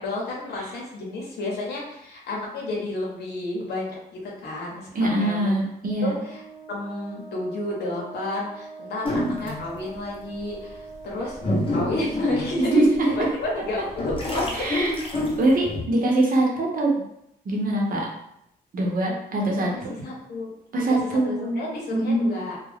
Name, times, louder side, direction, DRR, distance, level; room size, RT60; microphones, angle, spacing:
voice 1, 0.0-5.5 6.0-6.4 6.7-11.4 11.7-14.5 19.7-20.5 20.9-21.0 21.2-22.6, left 2 dB, 80° left, -3 dB, 0.7 m, -31 dB
voice 2, 4.9-6.2 12.6-13.0 14.5-15.0 15.4-16.9 17.4-18.1 18.7-19.7 20.7-21.6 21.9-22.3, right 2 dB, 60° right, -1 dB, 0.8 m, -23 dB
Wind instrument woodwind instrument, 6.2-14.0, right 4 dB, 30° right, 0.6 m, -43 dB
sound 1, 9.0-9.8 10.4-10.5 11.1-13.2 13.7-15.8, left 1 dB, 30° left, 0.7 m, -27 dB
2.3 x 2.1 x 3.3 m, 0.77 s
cardioid pair, 80°, 17 cm